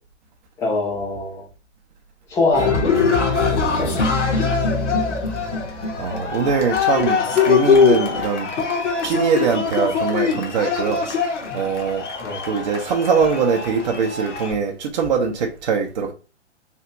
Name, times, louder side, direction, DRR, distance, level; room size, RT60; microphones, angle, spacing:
voice 1, 0.6-1.5 2.3-3.0 3.5-4.0 12.2-12.4, left 3 dB, 10° left, 0.5 m, -24 dB
Cheering, 2.5-14.5, left 5 dB, 75° left, 1.0 m, -22 dB
voice 2, 6.0-8.5 9.0-11.0 11.5-12.0 12.5-16.1, right 5 dB, 40° right, 0.5 m, -22 dB
3.4 x 2.4 x 2.9 m
figure-of-eight pair, 130°, 36 cm